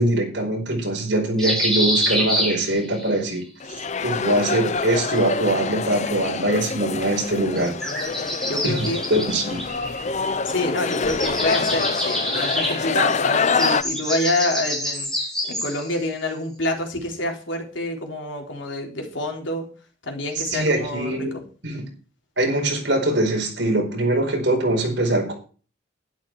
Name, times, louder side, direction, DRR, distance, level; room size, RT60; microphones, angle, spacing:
voice 1, 0.0-3.4 4.0-7.7 8.6-9.6 20.4-21.4 21.6-21.8 22.4-25.3, right 1 dB, 65° right, 2 dB, 4.8 m, -22 dB
sound 1, 1.4-3.1 4.5-5.6 7.5-10.5 10.8-15.9, equal, 5° left, 5.2 m, -27 dB
sound 2, 3.6-13.8, left 5 dB, 40° left, 0.6 m, -26 dB
voice 2, 8.4-9.0 10.4-15.1 15.4-19.7 20.0-21.3, left 1 dB, 80° left, 2 dB, 3.6 m, -27 dB
11.5 x 11.0 x 4.7 m, 0.38 s
head